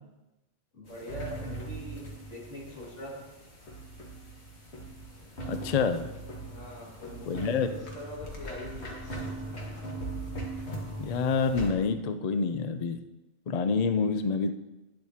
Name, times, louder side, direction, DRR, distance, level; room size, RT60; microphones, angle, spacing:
voice 1, 0.7-3.2 6.4-9.3, equal, 90° left, -3 dB, 2.6 m, -43 dB
sound 1, 0.9-11.7, right 2 dB, 65° left, 2.0 m, -40 dB
voice 2, 5.5-6.0 7.3-7.7 11.0-13.0 13.5-14.5, left 5 dB, 45° left, 9 dB, 0.5 m, -27 dB
12.0 x 9.7 x 2.8 m, 1.0 s
omnidirectional pair, 1.2 m